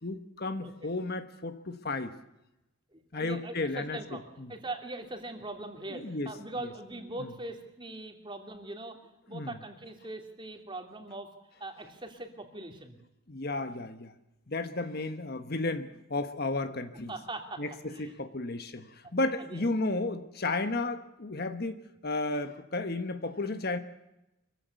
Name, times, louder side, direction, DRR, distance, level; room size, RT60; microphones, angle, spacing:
voice 1, 0.0-2.1 3.1-4.5 5.9-6.3 7.2-7.3 9.3-9.5 13.3-14.1 14.5-17.1 17.6-21.8 22.0-23.8, left 2 dB, 50° left, 9 dB, 1.3 m, -33 dB
voice 2, 2.9-9.0 9.3-11.3 11.6-13.0 17.1-17.6 17.9-18.1 19.0-19.1 19.4-19.6, right 2 dB, 25° right, 4 dB, 2.9 m, -41 dB
24.0 x 15.5 x 8.3 m, 0.91 s
head